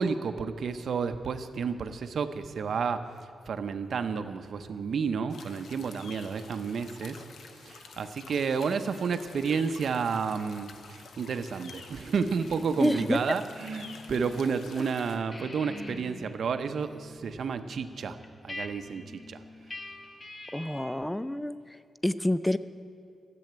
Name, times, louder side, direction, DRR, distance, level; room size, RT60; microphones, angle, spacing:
voice 1, 0.0-3.1 3.5-7.2 7.6-18.2 18.4-19.4, right 5 dB, 55° right, 9 dB, 0.7 m, -31 dB
sound 1, 5.3-15.2, left 4 dB, 70° left, 1.0 m, -49 dB
sound 2, 12.1-14.6 14.9-21.1, left 2 dB, 25° left, 0.8 m, -45 dB
voice 2, 12.8-13.2 14.8-14.9 20.5-22.6, left 1 dB, 5° left, 14 dB, 0.3 m, -28 dB
14.0 x 7.8 x 9.1 m, 2.3 s
wide cardioid pair, 170°, 0 cm